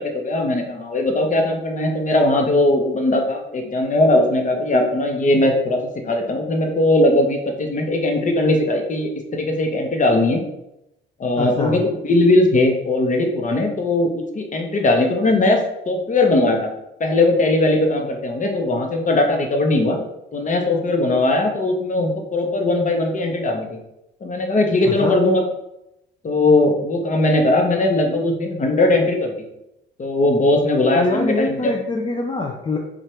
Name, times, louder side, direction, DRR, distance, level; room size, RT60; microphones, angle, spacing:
voice 1, 0.0-5.8 6.0-10.4 11.2-15.6 15.9-16.7 17.0-20.0 20.3-23.8 24.2-25.4 26.2-29.3 30.0-31.7, left 2 dB, 40° left, 3 dB, 0.9 m, -19 dB
voice 2, 11.4-11.8 24.9-25.2 30.9-32.8, left 3 dB, 25° left, 1 dB, 0.5 m, -24 dB
4.7 x 2.5 x 4.4 m, 0.87 s
cardioid pair, 90°, 20 cm